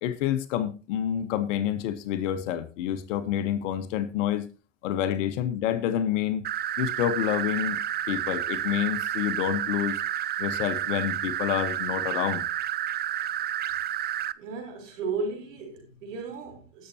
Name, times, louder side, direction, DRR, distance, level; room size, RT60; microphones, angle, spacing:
voice 1, 0.0-4.4 4.8-6.4 6.8-7.8 8.1-10.0 10.4-12.4, left 10 dB, 80° left, 1.2 m, -28 dB
sound 1, 6.4-14.3, right 11 dB, 30° right, 0.4 m, -30 dB
voice 2, 14.4-16.9, right 4 dB, 90° right, 4.1 m, -34 dB
19.5 x 6.8 x 2.8 m
hypercardioid pair, 90°, 36 cm